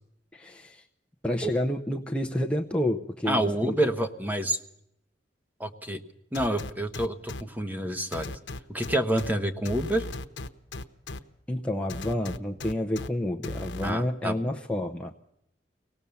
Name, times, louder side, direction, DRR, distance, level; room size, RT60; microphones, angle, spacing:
voice 1, 0.3-0.9 1.2-3.8 11.5-15.1, left 1 dB, 5° left, 1 dB, 0.7 m, -29 dB
voice 2, 3.3-4.6 5.6-6.0 6.3-8.4 8.7-10.0 13.8-14.5, right 1 dB, 10° right, 7 dB, 1.1 m, -28 dB
sound 1, 6.3-7.4 8.1-9.3 9.7-11.2 11.9-13.1 13.4-13.9, left 2 dB, 90° left, 0.9 m, -36 dB
24.5 x 18.0 x 7.0 m, 0.80 s
head